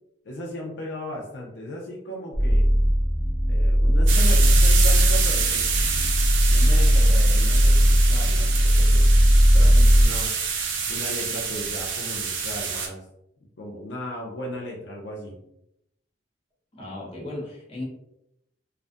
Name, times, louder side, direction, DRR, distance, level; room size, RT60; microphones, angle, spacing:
voice 1, 0.2-2.7 3.5-6.1 6.5-9.1 9.5-10.3 10.9-13.0 13.6-15.4, left 1 dB, 65° left, -2 dB, 0.5 m, -36 dB
sound 1, 2.3-10.1, equal, 15° right, 0.7 m, -18 dB
sound 2, 4.1-12.9, right 6 dB, 90° right, 0.5 m, -27 dB
voice 2, 16.7-17.8, left 1 dB, 30° left, -4 dB, 0.7 m, -36 dB
2.4 x 2.2 x 2.5 m, 0.82 s
head